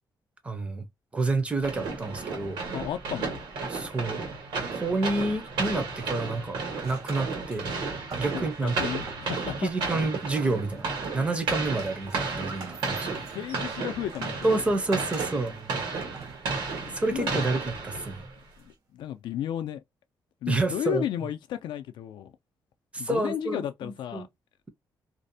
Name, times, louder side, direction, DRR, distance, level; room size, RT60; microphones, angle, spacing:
voice 1, 0.4-0.9 1.1-2.6 3.7-4.2 4.7-7.7 8.2-8.8 9.6-10.9 11.1-13.2 14.4-15.7 16.9-18.2 20.5-21.0 22.9-24.3, right 2 dB, 15° right, 0.5 m, -29 dB
sound 1, 1.6-18.4, right 4 dB, 90° right, 1.2 m, -33 dB
voice 2, 2.7-3.4 8.3-9.7 13.3-14.5 17.1-17.5 18.6-19.8 20.4-22.3 23.0-24.3, left 10 dB, 85° left, 0.4 m, -33 dB
sound 2, 5.4-6.4 6.7-9.6 10.2-10.9 11.3-17.7 18.6-18.7, right 4 dB, 55° right, 0.8 m, -46 dB
2.5 x 2.0 x 2.6 m
wide cardioid pair, 180°, 8 cm